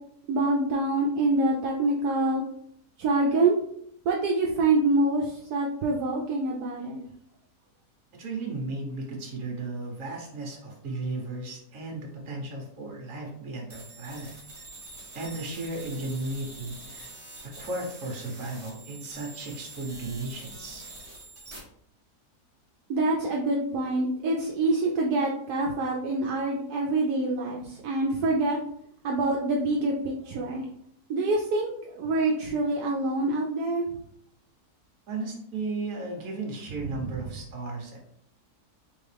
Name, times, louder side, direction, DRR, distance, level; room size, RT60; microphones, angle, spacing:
voice 1, 0.3-2.4 3.0-3.6 4.1-7.0 22.9-28.6 29.0-30.6 31.1-33.9 37.0-37.1, right 2 dB, 75° right, -1 dB, 1.1 m, -26 dB
voice 2, 8.2-14.3 15.1-17.1 17.4-20.8 35.1-38.0, right 2 dB, 55° right, 0 dB, 1.4 m, -35 dB
sound 1, 13.7-21.6, right 2 dB, 25° right, 1.3 m, -45 dB
3.8 x 3.6 x 3.3 m, 0.70 s
omnidirectional pair, 1.7 m